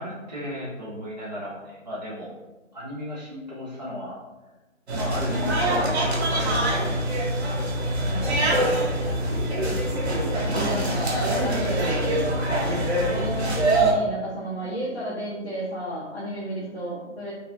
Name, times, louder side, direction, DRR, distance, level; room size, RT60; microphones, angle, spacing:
voice 1, 0.0-2.3 2.7-4.2 4.9-7.2 10.3-12.2 12.6-12.8 16.5-16.6, equal, 35° right, -8 dB, 0.4 m, -35 dB
sound 1, 4.9-13.9, right 1 dB, 55° right, 0.8 m, -24 dB
voice 2, 8.1-9.1 10.5-12.1 13.1-17.3, right 1 dB, 50° left, -8 dB, 0.8 m, -33 dB
3.0 x 2.6 x 2.6 m, 1.1 s
hypercardioid pair, 170°, 39 cm